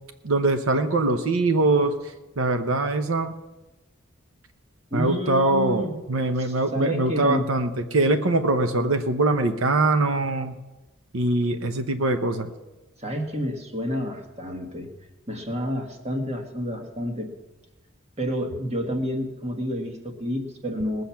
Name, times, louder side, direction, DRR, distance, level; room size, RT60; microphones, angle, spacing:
voice 1, 0.2-1.9 2.4-3.3 4.9-10.6 11.1-12.5, right 2 dB, 90° right, 8 dB, 0.9 m, -23 dB
voice 2, 4.9-5.9 6.3-7.4 13.0-14.9 15.3-17.3 18.2-21.0, equal, 30° right, 3 dB, 1.7 m, -29 dB
20.0 x 7.9 x 5.8 m, 1.1 s
head